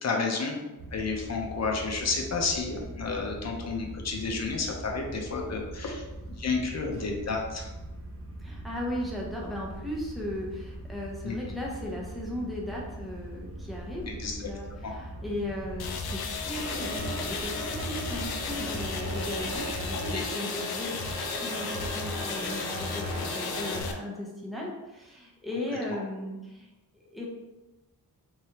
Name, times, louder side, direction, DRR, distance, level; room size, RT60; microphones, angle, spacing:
voice 1, 0.0-6.0 6.4-7.7 11.2-11.4 14.1-14.5 14.8-14.9 19.9-20.2, left 4 dB, 45° left, 1 dB, 0.7 m, -31 dB
sound 1, 0.8-20.3, right 1 dB, 40° right, 0.6 m, -42 dB
voice 2, 8.4-27.3, left 1 dB, ahead, -4 dB, 0.8 m, -37 dB
sound 2, 15.8-23.9, left 5 dB, 80° left, 0.5 m, -35 dB
sound 3, 16.5-23.8, right 1 dB, 85° right, 1.0 m, -37 dB
3.6 x 3.3 x 2.9 m, 1.0 s
wide cardioid pair, 140°, 37 cm